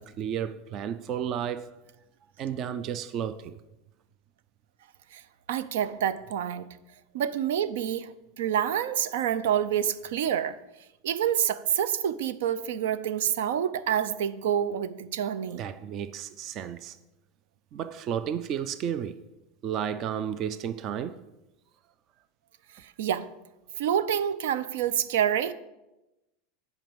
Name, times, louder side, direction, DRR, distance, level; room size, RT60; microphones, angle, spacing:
voice 1, 0.0-1.7 2.4-3.6 15.6-17.0 17.7-19.2 19.6-21.2, right 9 dB, 30° right, 0.3 m, -32 dB
voice 2, 5.5-6.7 7.1-10.6 11.0-15.6 22.8-23.3 23.7-25.5, right 9 dB, 80° right, 0.6 m, -27 dB
9.1 x 5.1 x 7.2 m
supercardioid pair, 180°, 0 cm